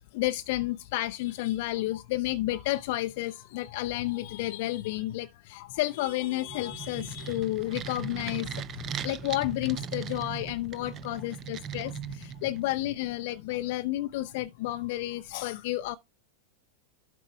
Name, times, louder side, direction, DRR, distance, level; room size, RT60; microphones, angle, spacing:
voice 1, 0.1-16.0, left 16 dB, 50° left, 0.5 m, -31 dB
sound 1, 6.4-12.8, right 9 dB, 30° right, 0.8 m, -39 dB
12.0 x 5.2 x 3.3 m
figure-of-eight pair, 90°, 0 cm